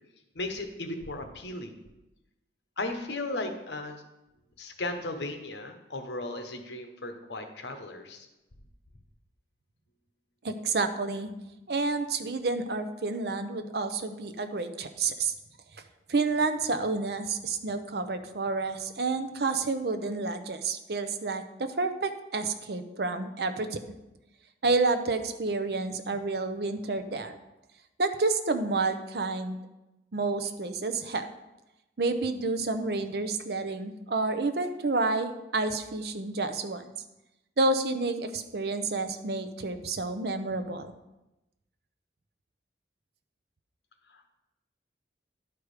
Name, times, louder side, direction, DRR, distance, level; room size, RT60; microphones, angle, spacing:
voice 1, 0.3-1.7 2.8-4.0 4.6-8.3 44.1-44.3, left 2 dB, 75° left, 6 dB, 1.1 m, -36 dB
voice 2, 10.4-11.3 11.7-15.3 16.1-23.8 24.6-27.4 28.0-29.6 30.1-31.3 32.0-36.9 37.6-40.9, right 3 dB, 60° right, 8 dB, 0.6 m, -29 dB
11.0 x 4.8 x 4.9 m, 0.99 s
head